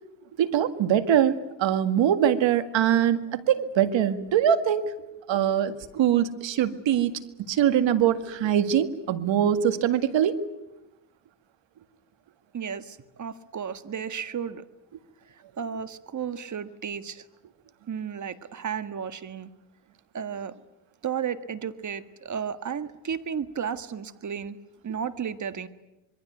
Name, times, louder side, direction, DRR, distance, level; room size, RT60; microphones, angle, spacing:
voice 1, 0.4-3.2 3.5-4.9 5.3-7.1 7.5-10.4, right 9 dB, 70° right, 11 dB, 2.1 m, -23 dB
voice 2, 12.5-14.6 15.6-17.2 17.9-19.5 20.1-20.5 21.0-24.6 24.8-25.7, right 7 dB, 40° right, 11 dB, 1.7 m, -33 dB
26.5 x 22.5 x 9.4 m, 0.95 s
cardioid pair, 100°, 46 cm